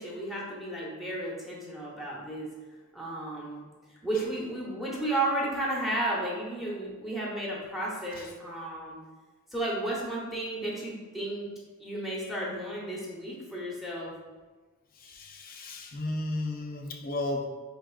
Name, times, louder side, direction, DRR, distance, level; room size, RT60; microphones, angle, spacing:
voice 1, 0.0-2.5 2.9-3.6 4.0-9.0 9.5-11.5 11.8-14.2, right 1 dB, ahead, -5 dB, 0.8 m, -33 dB
voice 2, 15.0-17.4, left 2 dB, 40° left, 3 dB, 0.5 m, -34 dB
4.7 x 2.9 x 2.4 m, 1.3 s
head